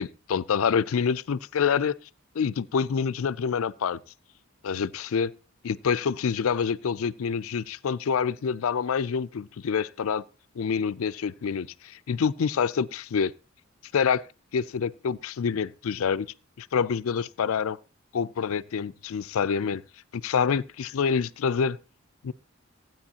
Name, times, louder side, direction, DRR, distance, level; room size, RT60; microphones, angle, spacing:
voice 1, 0.0-1.9 2.3-4.0 4.6-5.3 5.6-10.2 10.6-13.3 13.9-14.2 14.5-16.3 16.6-17.8 18.1-19.8 20.1-21.8 22.2-22.3, left 6 dB, 80° left, 0.4 m, -27 dB
15.5 x 9.1 x 2.8 m
head